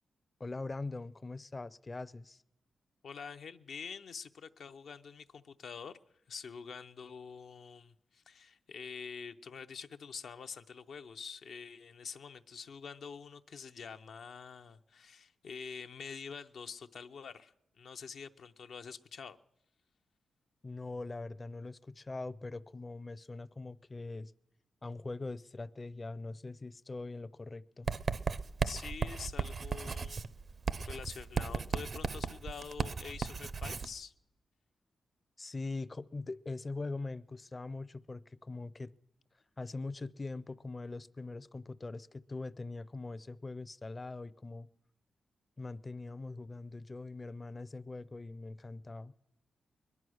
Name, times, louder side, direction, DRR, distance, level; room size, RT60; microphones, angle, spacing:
voice 1, 0.4-2.4 20.6-24.3 24.8-27.9 35.4-38.9 39.6-44.7 45.6-49.1, left 3 dB, 30° left, 0.5 m, -42 dB
voice 2, 3.0-5.9 6.3-19.4 28.6-30.3 30.8-34.1, left 6 dB, 75° left, 0.6 m, -46 dB
Writing, 27.9-33.9, right 5 dB, 50° right, 0.5 m, -36 dB
21.5 x 11.0 x 6.3 m
cardioid pair, 75°, 0 cm